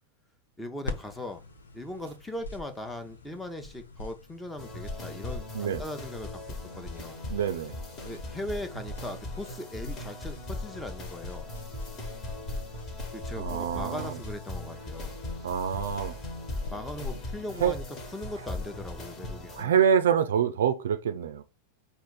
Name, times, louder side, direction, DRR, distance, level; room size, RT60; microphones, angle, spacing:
voice 1, 0.6-1.4 1.7-7.2 8.0-11.5 13.1-15.1 16.7-17.8 18.1-19.8, left 1 dB, 5° left, 0.8 m, -39 dB
sound 1, 0.8-18.4, left 3 dB, 75° left, 0.8 m, -44 dB
sound 2, 4.6-19.6, left 2 dB, 30° left, 1.3 m, -39 dB
voice 2, 7.3-7.7 13.3-14.2 15.4-16.2 17.6-17.7 19.6-21.4, right 8 dB, 60° right, 0.4 m, -26 dB
4.9 x 2.5 x 3.8 m
figure-of-eight pair, 90°, 0 cm